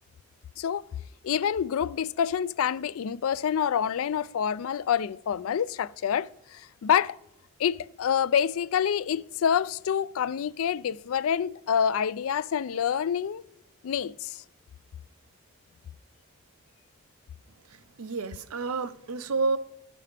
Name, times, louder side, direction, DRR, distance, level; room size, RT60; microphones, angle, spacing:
voice 1, 0.6-0.9 1.2-7.2 7.6-13.4 13.8-14.4, left 8 dB, 75° left, 0.3 m, -27 dB
voice 2, 17.7-19.6, right 4 dB, 85° right, 0.6 m, -30 dB
15.5 x 6.1 x 3.3 m
head